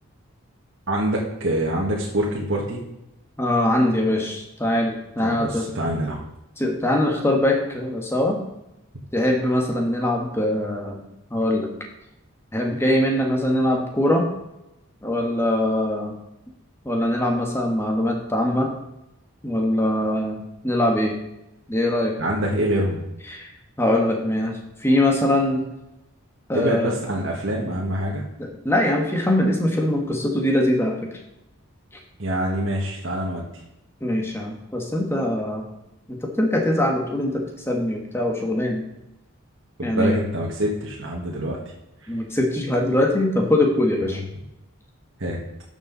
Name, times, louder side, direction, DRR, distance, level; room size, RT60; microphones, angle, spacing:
voice 1, 0.9-2.8 5.2-6.2 22.2-23.0 26.5-28.2 32.2-33.4 39.8-41.6 42.0-42.1 44.0-44.2 45.2-45.4, right 1 dB, 60° right, -3 dB, 1.6 m, -25 dB
voice 2, 3.4-5.7 6.6-8.4 9.1-11.0 11.3-11.7 12.5-14.3 15.0-16.1 16.8-18.7 19.4-20.4 20.6-21.1 21.7-22.2 23.3-23.5 23.8-25.6 26.5-26.9 28.4-31.1 34.0-35.6 36.1-38.8 39.8-40.2 42.1-44.2, left 1 dB, 10° left, 1 dB, 1.4 m, -22 dB
11.5 x 7.0 x 4.0 m, 0.89 s
head